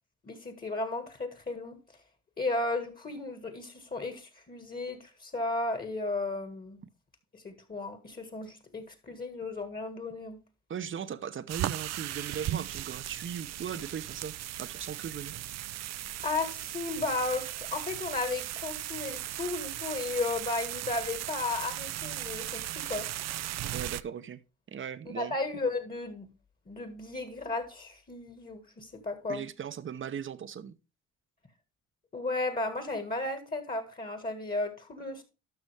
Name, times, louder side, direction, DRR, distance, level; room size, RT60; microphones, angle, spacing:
voice 1, 0.2-1.8 2.4-6.8 7.3-10.4 16.2-23.1 25.2-26.3 26.7-29.5 32.1-35.2, left 3 dB, 30° left, 1.8 m, -34 dB
voice 2, 10.7-14.3 14.6-15.3 23.7-24.4 24.7-25.3 29.3-30.7, right 8 dB, 40° right, 0.8 m, -38 dB
sound 1, 11.5-24.0, right 14 dB, 60° right, 0.5 m, -37 dB
12.0 x 6.0 x 3.4 m
cardioid pair, 90°, 30 cm